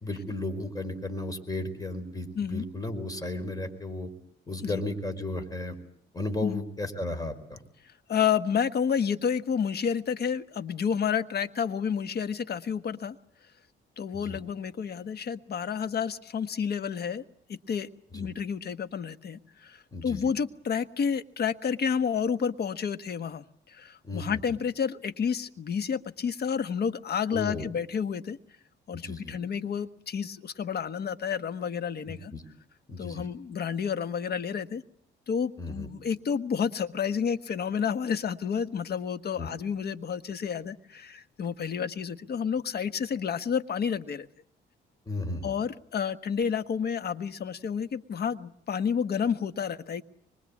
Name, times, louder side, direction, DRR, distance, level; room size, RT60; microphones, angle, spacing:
voice 1, 0.0-4.1 4.5-5.8 6.1-7.6 14.1-14.4 18.1-18.3 19.9-20.3 24.0-24.4 27.3-27.7 28.9-29.4 32.1-32.4 32.9-33.3 35.6-35.9 39.3-39.5 45.1-45.5, left 2 dB, 20° left, 8 dB, 4.7 m, -34 dB
voice 2, 8.1-13.2 14.0-17.2 17.5-28.4 28.9-32.3 33.0-34.8 35.3-44.3 45.4-50.0, left 7 dB, 55° left, 12 dB, 1.4 m, -30 dB
25.0 x 23.5 x 8.5 m, 0.66 s
cardioid pair, 90°, 20 cm